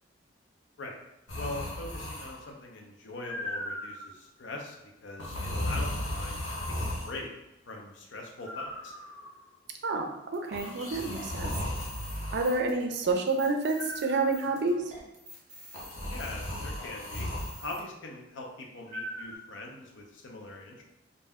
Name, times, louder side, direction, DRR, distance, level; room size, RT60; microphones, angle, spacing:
sound 1, 1.3-2.5 3.2-4.1 5.2-7.1 8.4-9.4 10.5-12.6 13.8-14.5 15.7-17.6 18.9-19.3, left 1 dB, 90° left, 0.9 m, -36 dB
voice 1, 1.3-4.7 5.0-6.4 7.0-7.3 7.7-8.9 16.1-17.3 17.5-20.8, left 2 dB, 70° left, 1 dB, 0.6 m, -42 dB
voice 2, 9.8-11.5 12.3-14.8, right 3 dB, 60° right, 4 dB, 0.4 m, -29 dB
sound 2, 10.3-17.8, equal, 40° right, 0.8 m, -50 dB
2.6 x 2.1 x 3.4 m, 0.91 s
head